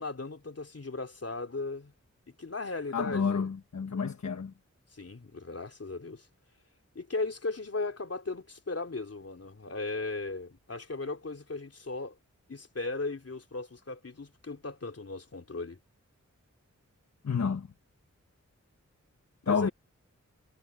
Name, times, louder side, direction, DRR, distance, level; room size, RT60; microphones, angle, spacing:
voice 1, 0.0-1.9 2.4-3.5 4.9-6.3 6.9-12.2 12.5-15.8 19.4-19.7, left 3 dB, 55° left, 3.5 m, -37 dB
voice 2, 2.9-4.5 17.2-17.7 19.5-19.7, left 6 dB, 70° left, 1.3 m, -29 dB
wide cardioid pair, 80°, 30 cm